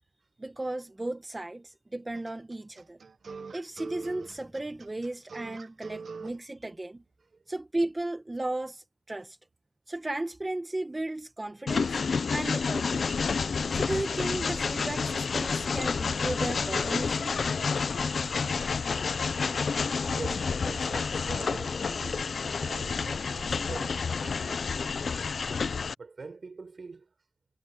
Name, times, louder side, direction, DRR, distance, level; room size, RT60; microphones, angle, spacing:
voice 1, 0.4-3.0 3.5-7.0 7.5-9.4 9.9-12.0 12.3-13.3 13.7-17.3, right 2 dB, 25° right, 1.0 m, -35 dB
sound 1, 2.1-6.4, right 5 dB, 85° right, 0.6 m, -43 dB
sound 2, 3.7-6.5 6.8-6.9, equal, ahead, 7.4 m, -60 dB
Train, 11.7-25.9, left 5 dB, 80° left, 0.3 m, -29 dB
voice 2, 20.1-24.7 26.0-27.1, right 4 dB, 60° right, 5.3 m, -43 dB
wide cardioid pair, 110°, 0 cm